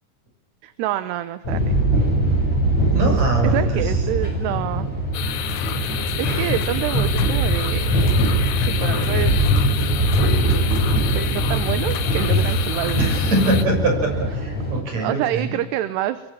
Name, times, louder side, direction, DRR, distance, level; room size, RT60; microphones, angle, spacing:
voice 1, 0.6-1.8 3.4-4.9 5.8-8.0 8.6-9.4 11.2-13.1 15.0-16.2, right 13 dB, 75° right, 13 dB, 3.0 m, -27 dB
sound 1, 1.4-14.8, right 1 dB, 40° left, 9.0 m, -21 dB
voice 2, 2.9-3.8 13.0-15.5, right 2 dB, 40° right, 3 dB, 7.5 m, -22 dB
sound 2, 5.1-13.7, left 10 dB, 90° left, 3.7 m, -29 dB
24.0 x 23.0 x 7.3 m, 0.88 s
omnidirectional pair, 4.9 m